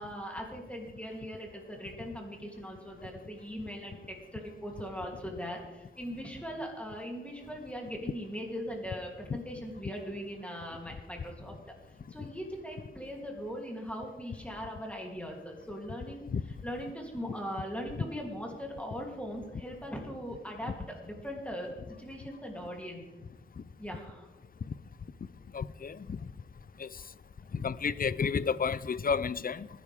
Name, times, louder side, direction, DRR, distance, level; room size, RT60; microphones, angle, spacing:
voice 1, 0.0-11.6 11.9-23.0 23.8-24.3, equal, 5° left, 3.0 m, -40 dB
voice 2, 25.5-26.2 26.8-26.9 27.5-29.7, left 6 dB, 45° left, 0.5 m, -31 dB
19.5 x 11.0 x 3.6 m
wide cardioid pair, 75°, 21 cm